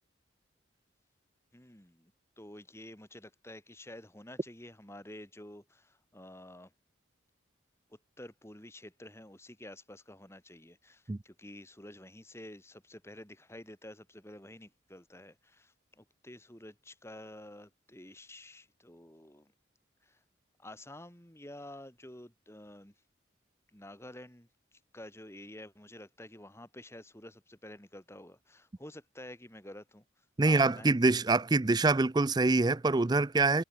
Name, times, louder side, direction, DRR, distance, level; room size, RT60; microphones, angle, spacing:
voice 1, 1.5-6.7 7.9-19.5 20.0-20.2 20.6-22.9 23.7-30.0 30.4-30.9, left 1 dB, 15° left, 2.8 m, -50 dB
voice 2, 30.4-33.6, right 3 dB, 20° right, 0.4 m, -25 dB
head